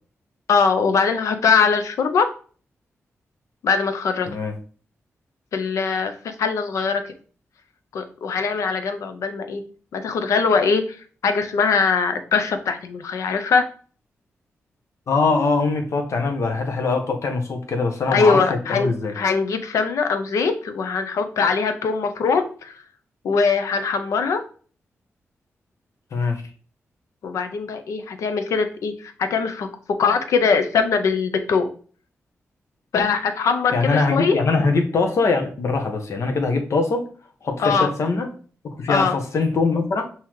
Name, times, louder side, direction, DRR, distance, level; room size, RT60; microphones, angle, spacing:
voice 1, 0.5-2.3 3.6-4.3 5.5-7.1 7.9-9.6 9.9-13.7 18.1-22.8 23.2-24.4 27.2-29.7 30.0-31.7 32.9-34.4 37.6-37.9 38.9-39.2, left 5 dB, 85° left, 8 dB, 0.6 m, -21 dB
voice 2, 15.1-19.1 26.1-26.4 33.7-37.1 37.4-38.3 38.6-40.0, left 3 dB, 70° left, 4 dB, 1.0 m, -22 dB
5.6 x 2.9 x 3.1 m, 0.42 s
cardioid pair, 60°, 5 cm